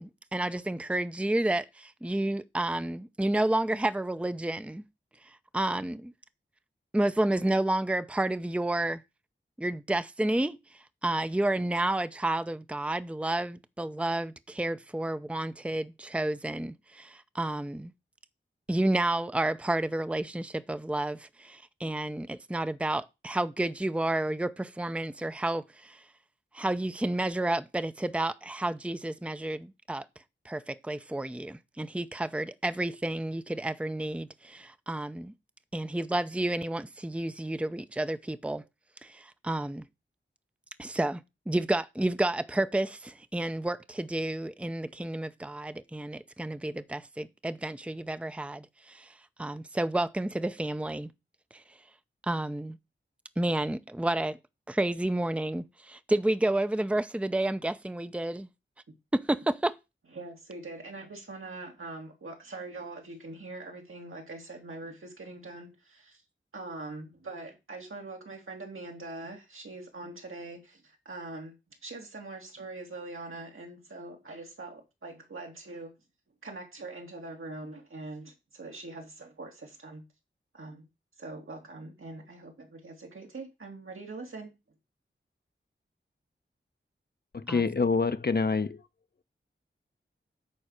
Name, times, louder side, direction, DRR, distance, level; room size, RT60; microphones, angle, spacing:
voice 1, 0.0-4.8 5.5-6.1 6.9-9.0 9.6-10.6 11.0-17.9 18.7-26.0 26.5-30.1 30.4-35.3 35.7-38.6 39.0-39.8 40.8-49.1 49.4-51.1 51.5-51.6 52.2-52.8 53.4-54.4 54.7-58.5 59.1-59.7 87.5-87.6, right 1 dB, 5° right, 0.7 m, -30 dB
voice 2, 60.1-66.2 66.5-71.5 71.8-75.9 76.4-80.0 80.5-80.9 81.2-84.5, right 2 dB, 80° right, 2.8 m, -43 dB
voice 3, 87.3-88.8, left 4 dB, 50° left, 0.9 m, -26 dB
10.0 x 4.3 x 6.5 m
cardioid pair, 50°, 21 cm